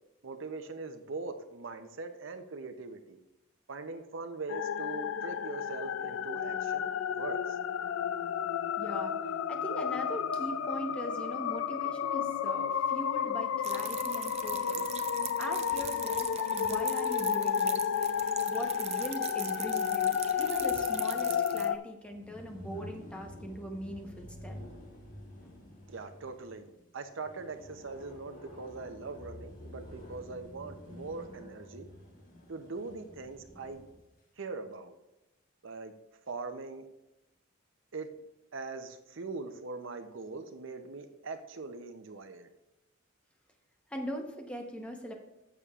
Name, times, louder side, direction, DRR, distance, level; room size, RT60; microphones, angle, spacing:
voice 1, 0.2-3.2 3.7-7.6 25.9-31.9 32.5-33.8 34.4-34.9 35.6-35.9 36.3-36.9 37.9-38.1 38.5-42.5, right 3 dB, 70° right, 8 dB, 0.7 m, -41 dB
sound 1, 4.5-21.8, left 8 dB, 85° left, 0.4 m, -32 dB
voice 2, 8.8-9.2 9.5-14.8 15.4-17.9 18.5-24.6 25.4-25.7 43.9-45.1, equal, 5° left, 2 dB, 0.9 m, -41 dB
sound 2, 13.6-21.7, right 10 dB, 30° right, 0.5 m, -42 dB
sound 3, 22.0-34.0, left 1 dB, 40° left, 1.7 m, -49 dB
14.0 x 6.8 x 2.4 m, 0.96 s
head